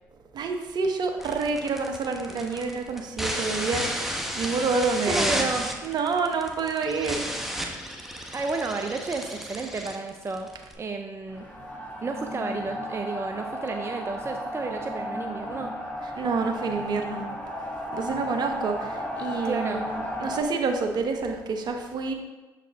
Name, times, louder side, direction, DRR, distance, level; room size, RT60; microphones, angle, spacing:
voice 1, 0.3-5.4 5.8-7.3 16.2-17.2 17.9-22.1, right 4 dB, 55° right, 4 dB, 0.9 m, -28 dB
sound 1, 1.2-10.7, equal, 5° right, 1.1 m, -32 dB
voice 2, 5.1-5.7 8.3-10.5 10.7-11.5 12.0-15.7 19.4-19.9, right 4 dB, 30° right, 4 dB, 0.5 m, -31 dB
sound 2, 11.3-20.4, equal, 15° left, 1.8 m, -34 dB
7.0 x 4.7 x 3.5 m, 1.2 s
hypercardioid pair, 55°, 9 cm